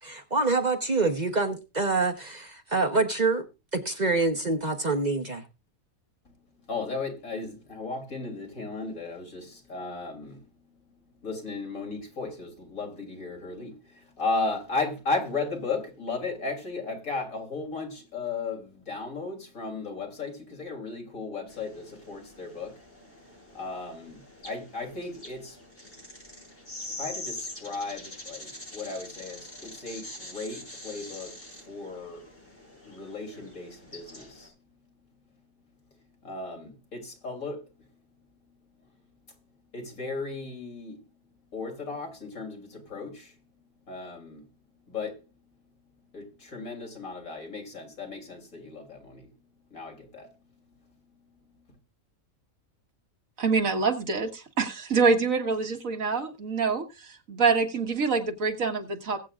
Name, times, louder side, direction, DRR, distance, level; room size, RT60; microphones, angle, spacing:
voice 1, 0.0-3.4 3.7-5.4, right 3 dB, 35° right, 1.1 m, -26 dB
voice 2, 6.7-10.4 11.2-22.8 23.5-25.6 27.0-31.4 31.7-32.3 32.8-34.5 36.2-37.7 39.7-41.0 41.5-43.3 43.9-44.4 44.9-45.2 46.1-49.3 49.7-50.3, left 3 dB, 75° left, 3.7 m, -35 dB
sound 1, 21.5-34.5, left 2 dB, 40° left, 6.9 m, -44 dB
voice 3, 53.4-59.2, right 4 dB, 70° right, 1.9 m, -26 dB
21.5 x 8.4 x 2.5 m
omnidirectional pair, 1.5 m